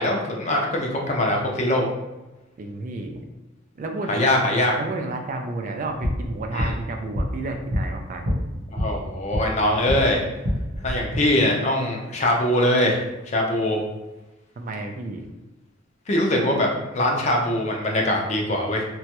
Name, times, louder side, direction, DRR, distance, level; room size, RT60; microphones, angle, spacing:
voice 1, 0.0-1.9 4.1-4.7 6.5-6.7 8.7-10.2 10.8-13.8 16.1-18.9, left 1 dB, 35° left, 0 dB, 0.5 m, -22 dB
voice 2, 2.6-3.3 3.8-4.4 4.8-8.3 14.6-15.3, right 2 dB, 40° right, 4 dB, 0.3 m, -31 dB
sound 1, 5.9-10.0 10.3-11.2, equal, 65° right, 0.8 m, -27 dB
2.9 x 2.2 x 2.8 m, 1.0 s
head